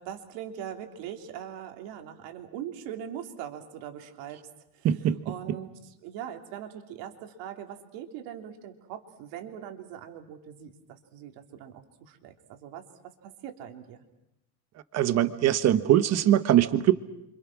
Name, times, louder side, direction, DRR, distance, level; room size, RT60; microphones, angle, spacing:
voice 1, 0.0-4.4 4.8-4.9 5.2-14.0, right 9 dB, 60° right, 5 dB, 3.4 m, -41 dB
voice 2, 4.8-5.2 5.5-5.6 14.9-16.9, right 12 dB, 30° right, 12 dB, 1.2 m, -22 dB
29.5 x 26.5 x 6.2 m, 0.86 s
cardioid pair, 175°, 49 cm